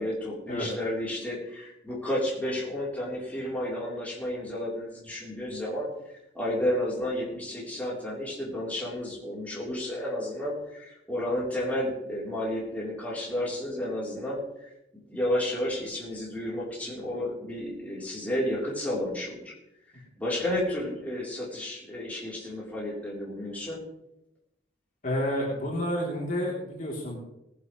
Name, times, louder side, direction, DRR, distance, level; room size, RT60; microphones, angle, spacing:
voice 1, 0.0-5.9 6.3-14.4 14.9-19.5 20.2-23.8, left 1 dB, 10° left, -6 dB, 3.7 m, -31 dB
voice 2, 25.0-27.2, equal, 45° left, -3 dB, 3.3 m, -30 dB
19.0 x 11.0 x 3.2 m, 0.85 s
head